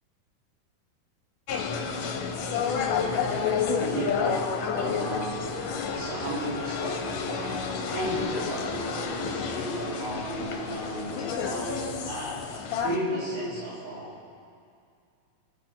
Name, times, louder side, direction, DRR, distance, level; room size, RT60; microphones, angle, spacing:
sound 1, 1.5-13.0, left 6 dB, 80° left, 2.6 m, -30 dB
voice 1, 3.7-5.4 5.9-12.4 12.8-14.1, right 1 dB, 60° right, -11 dB, 6.2 m, -34 dB
27.5 x 11.5 x 4.1 m, 2.3 s
omnidirectional pair, 3.8 m